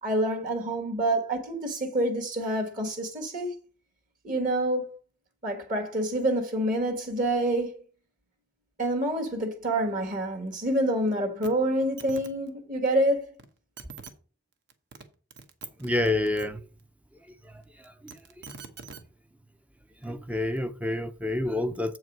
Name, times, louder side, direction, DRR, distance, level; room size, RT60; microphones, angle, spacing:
voice 1, 0.0-3.5 4.2-5.0 5.4-7.8 8.8-13.3, right 1 dB, 45° right, 1.5 m, -27 dB
sound 1, 11.4-11.5 11.8-12.3 13.4-13.5 13.8-14.1 14.7-15.0 15.3-16.5 17.8-19.0 20.0-20.1, right 5 dB, 60° right, 1.0 m, -44 dB
voice 2, 15.8-16.6 20.0-22.0, left 2 dB, 5° right, 0.5 m, -28 dB
7.9 x 4.7 x 6.1 m
head